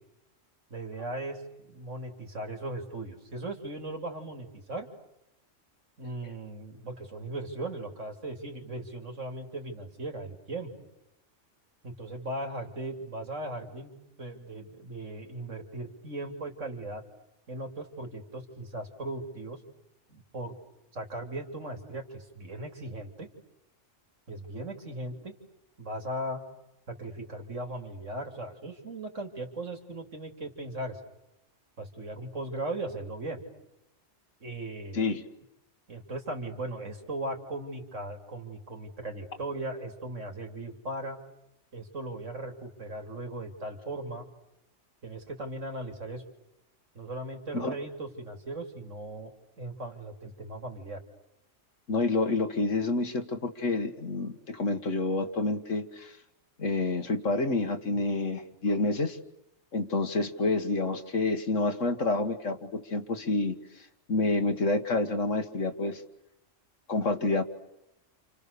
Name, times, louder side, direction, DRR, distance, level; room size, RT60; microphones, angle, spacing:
voice 1, 0.7-4.9 6.0-10.7 11.8-17.0 17.5-19.6 20.1-20.5 20.9-23.3 24.3-25.4 25.8-26.4 26.9-31.0 31.8-33.4 34.4-35.1 35.9-41.2 41.7-44.3 45.0-46.2 47.0-51.0, right 2 dB, 75° right, 4 dB, 3.6 m, -38 dB
voice 2, 51.9-56.2 56.6-59.2 59.7-66.0 66.9-67.4, left 3 dB, 75° left, 7 dB, 2.1 m, -28 dB
29.5 x 29.0 x 6.9 m, 0.86 s
omnidirectional pair, 1.3 m